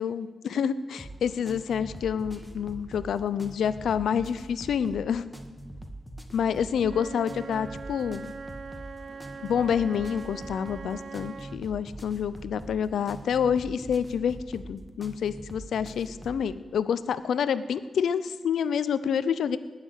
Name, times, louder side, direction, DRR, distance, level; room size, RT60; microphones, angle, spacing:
voice 1, 0.0-5.2 6.3-8.3 9.4-19.6, left 7 dB, 80° left, 15 dB, 0.6 m, -28 dB
sound 1, 1.0-16.5, right 1 dB, 5° left, 1.9 m, -43 dB
Wind instrument woodwind instrument, 6.8-11.6, right 4 dB, 65° right, 0.7 m, -41 dB
19.0 x 6.7 x 8.1 m, 1.4 s
supercardioid pair, 45°, 0 cm